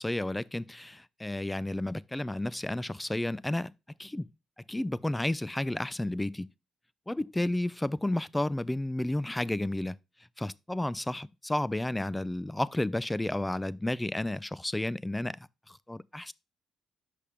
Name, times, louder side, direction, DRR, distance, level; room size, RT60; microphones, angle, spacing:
voice 1, 0.0-3.7 4.0-4.3 4.7-6.5 7.1-10.0 10.4-16.3, left 1 dB, 10° left, 0.3 m, -32 dB
5.6 x 5.0 x 3.4 m
cardioid pair, 90°, 0 cm